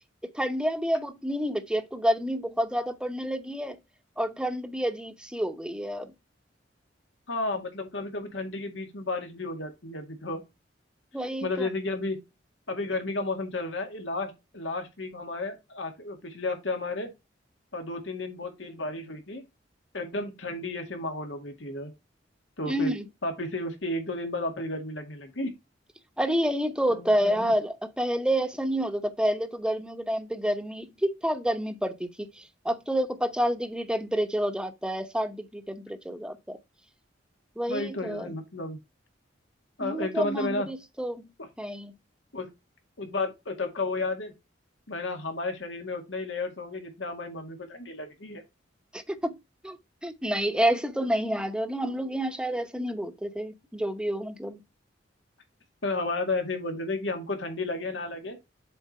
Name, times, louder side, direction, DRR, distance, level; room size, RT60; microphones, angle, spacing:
voice 1, 0.3-3.8 4.2-6.1 11.1-11.7 22.6-23.1 26.2-36.6 37.6-38.3 39.8-41.3 41.6-41.9 48.9-49.3 49.6-49.8 50.0-54.6, equal, 5° right, 0.9 m, -29 dB
voice 2, 7.3-10.4 11.4-12.2 12.7-17.1 17.7-19.4 19.9-21.9 22.6-22.9 23.2-25.5 26.9-27.5 37.7-38.8 39.8-40.7 41.4-41.5 42.3-42.5 43.0-44.3 44.9-48.4 55.8-58.4, left 2 dB, 85° left, 2.0 m, -32 dB
7.7 x 4.3 x 4.3 m
head